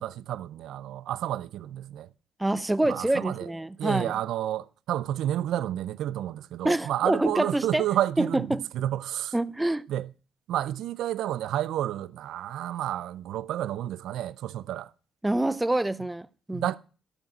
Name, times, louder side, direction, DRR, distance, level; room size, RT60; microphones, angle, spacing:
voice 1, 0.0-2.1 2.8-3.5 3.8-9.3 9.9-10.1 10.5-14.9 16.5-16.8, right 12 dB, 80° right, 0.4 m, -30 dB
voice 2, 2.4-4.1 6.6-7.8 8.2-8.7 9.3-9.9 15.2-16.7, right 1 dB, 10° right, 0.6 m, -26 dB
12.5 x 5.0 x 7.4 m
cardioid pair, 90°, 0 cm